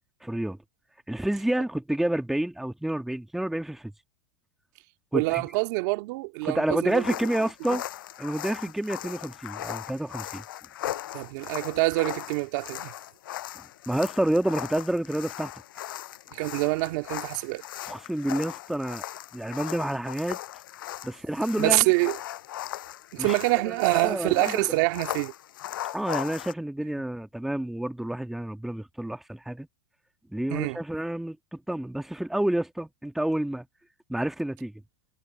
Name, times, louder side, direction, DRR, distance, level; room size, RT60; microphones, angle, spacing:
voice 1, 0.2-0.6 1.1-3.9 5.1-5.4 6.4-7.8 8.2-10.4 13.5-15.5 17.8-19.0 19.3-20.4 21.0-21.9 23.2-23.3 23.6-24.7 25.9-29.7 30.3-33.7 34.1-34.7, right 1 dB, ahead, 1.6 m, -29 dB
voice 2, 5.1-7.0 11.1-12.9 16.3-17.6 21.6-22.2 23.1-25.3 30.5-30.8, right 24 dB, 60° right, 2.1 m, -25 dB
sound 1, 6.9-26.5, left 13 dB, 80° left, 7.1 m, -38 dB
supercardioid pair, 130°, 11 cm